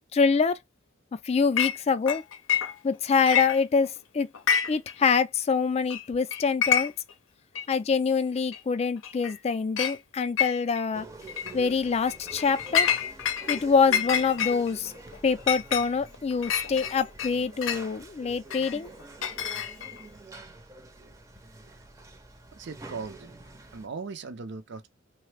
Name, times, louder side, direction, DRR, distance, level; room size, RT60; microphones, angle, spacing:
voice 1, 0.1-0.6 1.2-2.2 2.8-4.3 4.7-6.9 7.7-11.1 11.5-12.9 13.5-14.9 15.2-18.9, left 5 dB, 35° left, 0.3 m, -25 dB
Chink clink, 1.6-1.8 2.1-3.0 3.3-4.0 4.3-4.9 5.2-5.3 5.9-6.0 6.3-7.1 7.6-7.7 8.5-8.6 9.0-9.4 9.8-10.0 10.4-10.9 11.3-11.5 12.1-13.6 13.9-17.9 18.5-20.0, left 8 dB, 85° left, 0.5 m, -28 dB
sound 1, 10.9-23.9, right 3 dB, 15° right, 0.5 m, -47 dB
voice 2, 22.5-23.3 23.7-24.9, right 4 dB, 65° right, 0.5 m, -38 dB
3.2 x 2.0 x 3.2 m
head